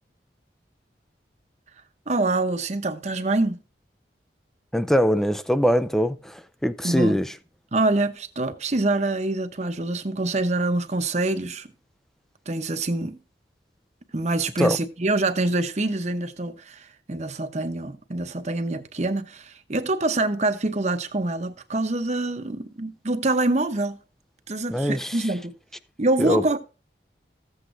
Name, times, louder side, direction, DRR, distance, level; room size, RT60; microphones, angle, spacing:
voice 1, 2.1-3.6 6.8-7.2 7.7-11.7 12.5-13.2 14.1-24.0 24.5-25.5 26.0-26.6, right 2 dB, 40° right, 0.8 m, -25 dB
voice 2, 4.7-7.3 14.6-14.8 24.7-25.3 26.2-26.6, equal, ahead, 0.4 m, -23 dB
14.5 x 8.0 x 2.6 m
head